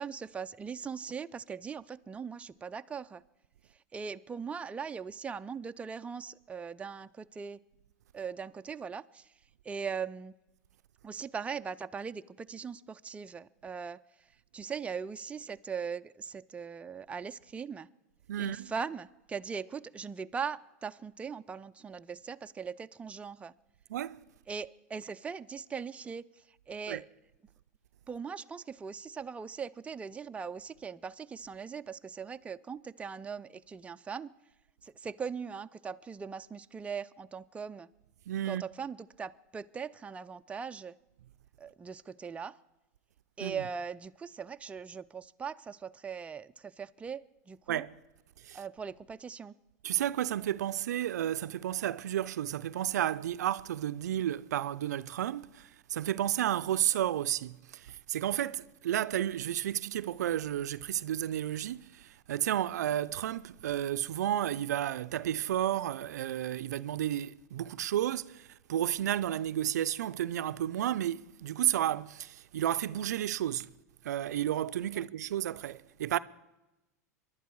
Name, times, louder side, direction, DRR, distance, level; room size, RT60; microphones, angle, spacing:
voice 1, 0.0-3.2 3.9-7.6 8.1-9.3 9.6-10.3 11.0-14.0 14.5-17.9 18.4-23.5 24.5-27.1 28.1-34.3 34.8-37.9 38.5-41.0 41.6-42.6 43.4-47.8 48.5-49.5 75.0-75.1, right 6 dB, 15° right, 0.4 m, -40 dB
voice 2, 18.3-18.7 23.9-24.2 26.9-27.0 38.3-38.6 43.4-43.6 47.7-48.0 48.4-48.6 49.8-73.7 74.0-76.2, right 11 dB, 85° right, 0.4 m, -32 dB
24.0 x 11.0 x 4.6 m
hypercardioid pair, 110°, 9 cm